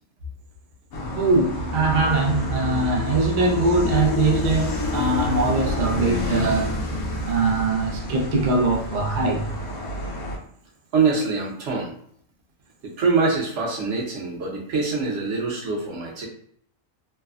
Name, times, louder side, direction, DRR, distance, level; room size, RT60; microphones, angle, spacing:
sound 1, 0.9-10.4, left 1 dB, 85° left, 1.2 m, -28 dB
voice 1, 1.1-6.7 7.3-9.5, right 3 dB, 75° right, 0.4 m, -22 dB
sound 2, 1.5-7.4, right 1 dB, 65° left, 0.6 m, -33 dB
voice 2, 10.9-11.9 12.8-16.3, right 4 dB, 60° right, 1.0 m, -24 dB
3.3 x 2.1 x 2.3 m
omnidirectional pair, 1.5 m